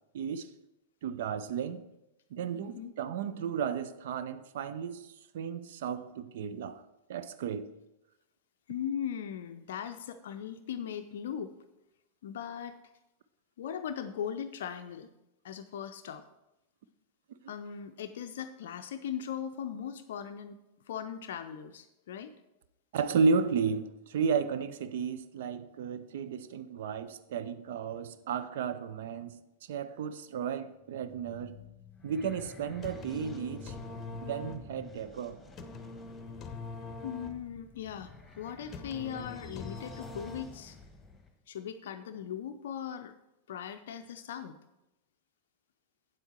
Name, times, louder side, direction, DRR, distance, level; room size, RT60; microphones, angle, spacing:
voice 1, 0.1-0.5 1.0-1.8 2.3-6.8 7.1-7.7 22.9-29.4 29.7-31.6 32.0-33.7 34.2-35.4, right 6 dB, 55° right, 0.4 m, -33 dB
voice 2, 2.5-2.9 8.7-11.5 12.2-12.8 13.6-15.1 15.4-16.2 17.5-20.6 20.9-22.3 37.0-40.8 41.5-43.1 43.5-44.6, left 8 dB, 60° left, 0.4 m, -39 dB
sound 1, 30.8-41.3, left 3 dB, 10° left, 1.5 m, -52 dB
sound 2, 32.8-40.8, left 3 dB, 25° left, 0.8 m, -44 dB
8.8 x 7.9 x 4.5 m
figure-of-eight pair, 90°, 0 cm